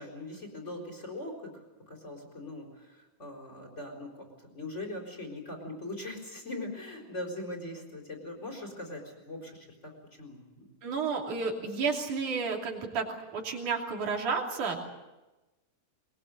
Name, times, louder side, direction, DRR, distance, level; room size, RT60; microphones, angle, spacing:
voice 1, 0.0-9.9 10.2-10.7, left 1 dB, 20° left, 1 dB, 4.4 m, -41 dB
voice 2, 10.8-14.8, right 5 dB, 70° right, 1 dB, 4.3 m, -31 dB
22.0 x 22.0 x 8.0 m, 1.1 s
omnidirectional pair, 3.7 m